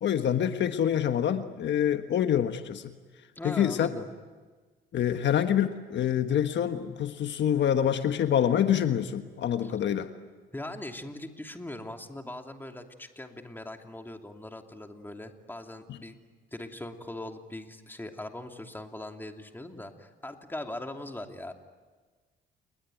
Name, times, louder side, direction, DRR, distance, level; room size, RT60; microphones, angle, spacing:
voice 1, 0.0-2.9 3.4-3.9 4.9-10.1, left 9 dB, 65° left, 8 dB, 1.4 m, -26 dB
voice 2, 3.4-4.1 9.6-9.7 10.5-16.2 16.5-21.5, left 1 dB, 10° left, 4 dB, 2.8 m, -40 dB
30.0 x 20.5 x 9.3 m, 1.4 s
cardioid pair, 90°, 20 cm